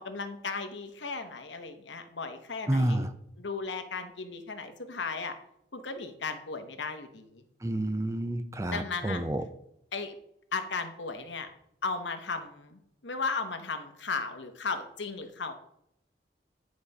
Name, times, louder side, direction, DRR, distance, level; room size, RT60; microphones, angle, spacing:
voice 1, 0.0-3.0 3.4-5.3 5.7-7.4 8.6-9.2 9.9-10.1 10.5-11.5 11.8-15.6, left 4 dB, 85° left, 7 dB, 1.1 m, -36 dB
voice 2, 2.7-3.1 7.6-9.4, right 1 dB, 15° right, 9 dB, 0.5 m, -29 dB
9.7 x 4.2 x 5.3 m, 0.76 s
head